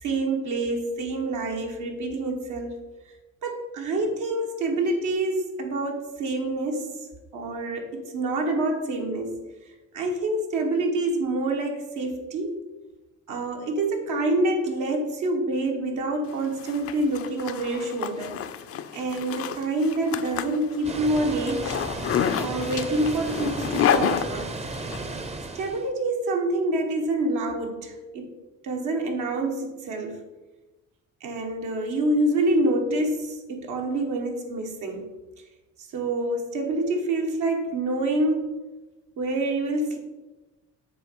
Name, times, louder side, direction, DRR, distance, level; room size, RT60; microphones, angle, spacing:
voice 1, 0.0-2.8 3.4-6.9 7.3-9.4 9.9-12.6 13.3-18.4 18.9-21.8 22.4-24.5 25.5-28.3 28.6-30.2 31.2-35.1 35.9-38.6 39.2-40.0, right 2 dB, 80° right, 2 dB, 1.3 m, -27 dB
Zipper (clothing), 16.3-25.0, left 9 dB, 50° left, 0.5 m, -29 dB
Water, 20.8-25.9, right 3 dB, 20° right, 0.6 m, -34 dB
7.6 x 3.0 x 5.2 m, 1.1 s
cardioid pair, 90°, 30 cm